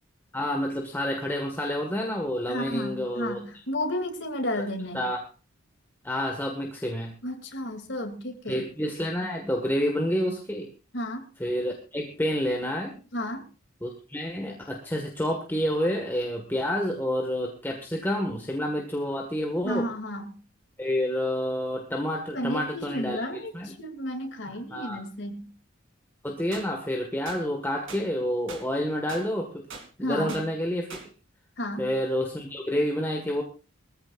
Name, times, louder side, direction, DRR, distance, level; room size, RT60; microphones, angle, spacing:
voice 1, 0.3-3.4 4.9-5.2 6.0-7.1 8.5-10.7 11.4-13.0 13.8-19.8 20.8-23.2 23.5-23.8 24.5-25.0 26.2-29.7 30.0-31.0 31.8-33.4, equal, 10° left, 1 dB, 1.6 m, -29 dB
voice 2, 2.5-5.0 7.2-8.6 10.9-11.3 13.1-13.4 19.6-20.4 22.3-25.5 30.0-30.5 31.6-31.9, left 1 dB, 60° left, 5 dB, 2.7 m, -32 dB
sound 1, 26.5-26.7 27.3-27.4 27.9-28.0 28.5-28.6 29.1-29.2 29.7-29.9 30.3-30.4 30.9-31.1, right 4 dB, 75° right, 2.9 m, -40 dB
22.0 x 14.5 x 2.5 m, 0.32 s
head